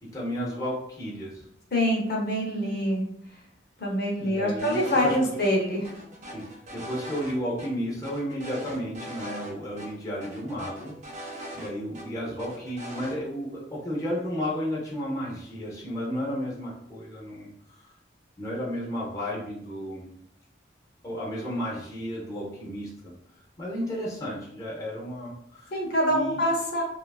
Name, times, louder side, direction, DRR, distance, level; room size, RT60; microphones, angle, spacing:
voice 1, 0.0-1.5 4.2-5.2 6.3-17.9 18.4-20.1 21.0-23.1 23.6-25.7 26.1-26.4, equal, 15° left, -5 dB, 0.6 m, -33 dB
voice 2, 1.7-3.1 3.8-5.9 25.7-26.8, equal, 55° left, -2 dB, 0.7 m, -25 dB
sound 1, 4.6-5.1 5.4-5.5 5.8-7.3 7.6-7.7 8.0-9.5 9.8-9.9 10.2-12.0 12.4-13.2, right 1 dB, 40° right, 0.5 m, -40 dB
2.9 x 2.3 x 2.3 m, 0.72 s
head